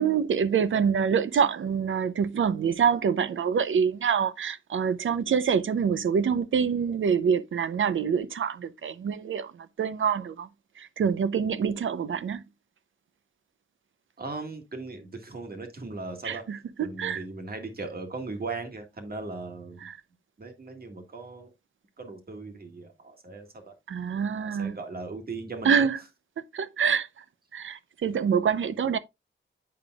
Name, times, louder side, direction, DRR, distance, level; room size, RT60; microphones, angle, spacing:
voice 1, 0.0-10.5 10.8-12.4 16.2-17.2 19.8-20.0 23.9-24.7 25.6-26.0 26.5-27.2 27.5-29.0, right 7 dB, 75° right, 0.6 m, -26 dB
voice 2, 14.2-16.4 16.8-19.9 20.4-21.5 22.0-23.7 24.4-25.9, right 3 dB, 50° right, 1.7 m, -38 dB
8.7 x 5.1 x 2.3 m
wide cardioid pair, 100°, 20 cm